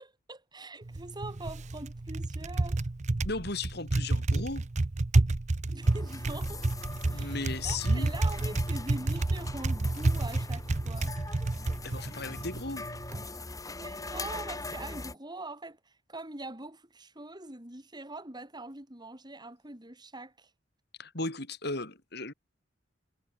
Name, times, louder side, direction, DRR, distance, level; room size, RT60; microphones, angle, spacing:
voice 1, 0.0-2.9 5.7-6.7 7.1-7.4 7.6-11.1 13.8-20.5, right 2 dB, 25° right, 3.9 m, -43 dB
Typing, 0.8-13.2, right 2 dB, 40° right, 0.7 m, -30 dB
voice 2, 3.2-4.7 7.1-8.1 11.8-12.9 21.0-22.3, left 3 dB, 60° left, 7.4 m, -36 dB
sound 1, 5.8-15.1, left 2 dB, 20° left, 2.7 m, -42 dB
head